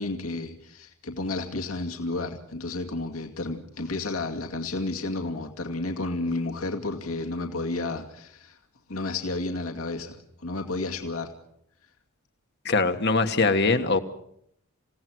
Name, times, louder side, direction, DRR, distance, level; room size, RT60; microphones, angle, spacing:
voice 1, 0.0-8.6 8.9-11.3, left 2 dB, 80° left, 2 dB, 2.4 m, -31 dB
voice 2, 12.6-14.0, left 3 dB, 50° left, 7 dB, 1.5 m, -22 dB
28.0 x 17.0 x 6.3 m, 0.72 s
head